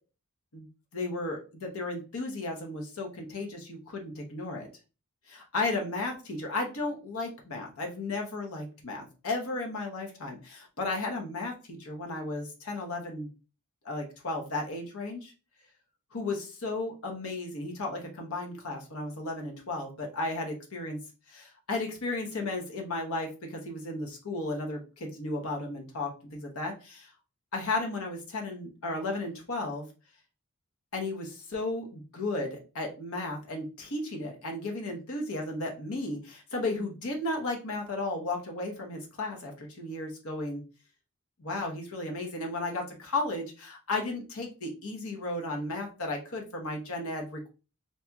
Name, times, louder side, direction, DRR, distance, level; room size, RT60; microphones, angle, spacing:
voice 1, 0.9-4.7 5.3-13.3 13.8-15.3 16.1-21.0 21.3-27.1 27.5-29.9 30.9-40.6 41.4-47.5, left 2 dB, 85° left, 1 dB, 1.0 m, -34 dB
4.2 x 2.8 x 2.3 m, 0.32 s
head